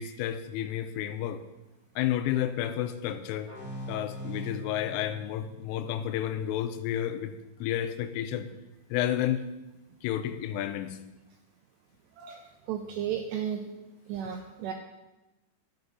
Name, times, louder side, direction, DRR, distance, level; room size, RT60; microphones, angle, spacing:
voice 1, 0.0-1.4 2.0-3.5 3.9-8.5 8.9-9.4 10.0-11.0, left 11 dB, 90° left, 10 dB, 3.2 m, -31 dB
sound 1, 3.5-6.9, equal, 25° right, 1.8 m, -42 dB
voice 2, 12.2-13.6 14.1-14.7, right 9 dB, 90° right, 4 dB, 2.4 m, -34 dB
12.5 x 6.8 x 5.4 m, 1.0 s
omnidirectional pair, 5.6 m